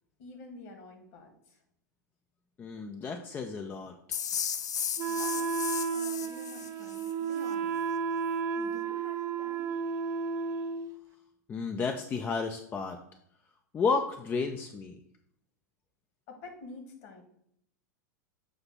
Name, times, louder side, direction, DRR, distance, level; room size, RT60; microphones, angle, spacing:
voice 1, 0.2-1.6 5.1-5.5 5.9-7.8 8.5-9.7 16.3-17.2, left 2 dB, 50° left, 4 dB, 1.7 m, -48 dB
voice 2, 2.6-3.9 11.5-13.0 13.7-15.0, left 4 dB, 20° left, 4 dB, 0.5 m, -32 dB
sound 1, 4.1-7.1, left 8 dB, 65° left, 0.5 m, -35 dB
Wind instrument woodwind instrument, 5.0-10.9, right 6 dB, 30° right, 0.4 m, -32 dB
7.2 x 2.9 x 5.8 m, 0.71 s
figure-of-eight pair, 95°, 10 cm